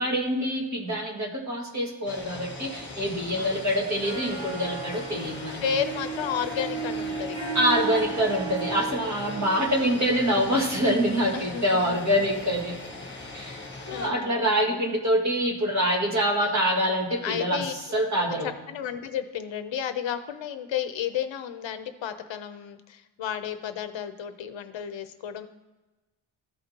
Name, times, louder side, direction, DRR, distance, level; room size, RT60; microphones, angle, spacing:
voice 1, 0.0-5.6 7.5-12.8 13.3-17.6 17.9-18.5, equal, 35° right, -1 dB, 2.1 m, -25 dB
sound 1, 2.1-14.1, left 2 dB, 20° left, 1.5 m, -40 dB
Harp, 3.9-12.5, right 4 dB, 75° right, 1.9 m, -36 dB
voice 2, 5.6-7.4 9.4-9.6 11.3-12.0 13.9-14.7 16.4-16.7 17.2-17.7 18.4-25.5, left 8 dB, 65° left, 9 dB, 0.7 m, -32 dB
14.0 x 5.0 x 2.9 m, 1.1 s
wide cardioid pair, 120°, 49 cm